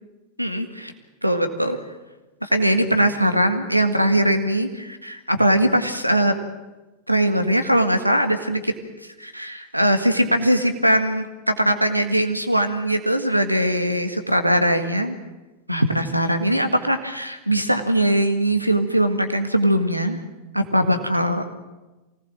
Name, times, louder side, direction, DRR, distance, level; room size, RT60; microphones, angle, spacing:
voice 1, 0.4-0.9 1.2-1.8 2.4-6.3 7.1-8.7 9.2-15.2 15.7-20.2 20.5-21.4, right 1 dB, 90° right, 8 dB, 1.8 m, -21 dB
24.5 x 18.5 x 7.7 m, 1.1 s
figure-of-eight pair, 90°, 0 cm